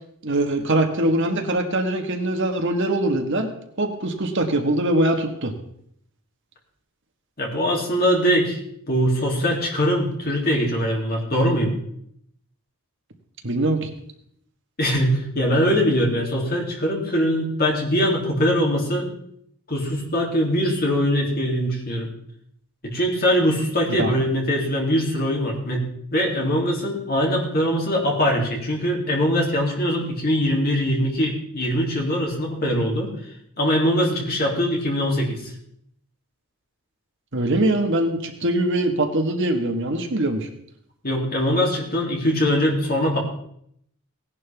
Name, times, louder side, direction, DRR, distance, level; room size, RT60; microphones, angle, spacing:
voice 1, 0.2-3.5 3.8-5.5 13.4-13.9 23.9-24.1 37.3-40.5, right 1 dB, 55° right, 4 dB, 1.6 m, -22 dB
voice 2, 7.4-8.6 8.9-11.7 14.8-19.1 19.7-22.1 22.8-25.8 26.1-33.1 33.6-35.5 41.0-43.2, equal, 40° left, -1 dB, 3.0 m, -22 dB
17.5 x 11.0 x 3.6 m, 0.70 s
head